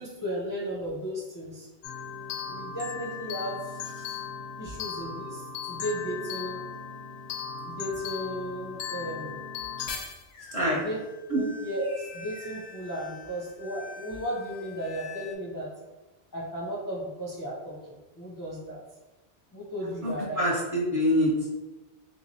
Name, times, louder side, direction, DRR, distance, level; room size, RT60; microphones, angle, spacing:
voice 1, 0.0-1.7 2.5-4.2 4.6-6.6 7.6-9.5 9.8-9.9 10.8-11.0 11.3-15.7 16.3-18.8 19.5-20.5, equal, 25° left, -5 dB, 0.5 m, -35 dB
sound 1, 1.8-15.3, left 6 dB, 90° left, 0.9 m, -39 dB
voice 2, 10.5-10.8 11.3-11.4 19.8-21.5, equal, 40° right, -4 dB, 0.6 m, -26 dB
3.6 x 3.1 x 2.6 m, 1.1 s
omnidirectional pair, 1.0 m